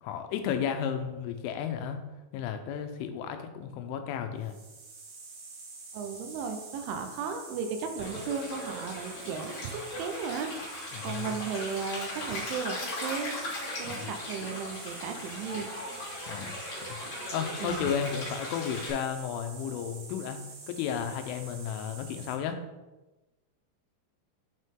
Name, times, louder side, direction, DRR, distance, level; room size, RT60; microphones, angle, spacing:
voice 1, 0.0-2.0 2.3-4.6 10.9-11.4 13.8-14.1 16.3-16.6 16.9-17.0 17.3-22.6, left 8 dB, 85° left, 7 dB, 3.1 m, -33 dB
sound 1, 4.4-22.3, right 4 dB, 65° right, 2.6 m, -47 dB
voice 2, 5.9-13.3 13.8-15.7 17.6-17.9, right 6 dB, 80° right, 6 dB, 3.1 m, -35 dB
Stream, 8.0-18.9, left 1 dB, 45° left, 3.1 m, -38 dB
8.4 x 5.4 x 3.7 m, 1.1 s
omnidirectional pair, 5.6 m